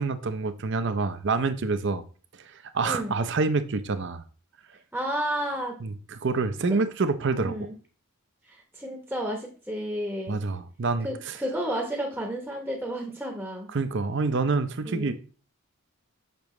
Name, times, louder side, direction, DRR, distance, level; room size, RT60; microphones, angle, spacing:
voice 1, 0.0-2.0 2.7-4.2 5.8-7.7 10.3-11.3 13.7-15.1, right 4 dB, 55° right, 0.6 m, -27 dB
voice 2, 2.8-3.2 4.9-5.8 6.7-6.8 7.4-7.7 8.5-10.4 11.0-13.7 14.8-15.1, equal, 5° right, 0.9 m, -32 dB
6.8 x 5.9 x 3.1 m
head